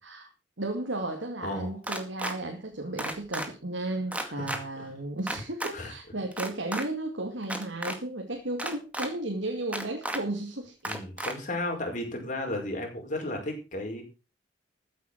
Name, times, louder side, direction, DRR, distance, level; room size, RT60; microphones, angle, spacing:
voice 1, 0.6-10.9, right 2 dB, 85° right, 2.6 m, -34 dB
voice 2, 1.4-1.8 4.1-4.5 4.8-4.9 5.7-5.9 10.8-14.0, left 1 dB, 45° left, 5.2 m, -34 dB
sound 1, 1.8-2.3 3.0-3.5 4.1-4.6 5.3-5.7 6.3-6.8 7.4-8.0 8.6-9.1 9.7-10.2 10.8-11.3, right 1 dB, 10° right, 2.0 m, -33 dB
14.5 x 8.2 x 6.1 m
head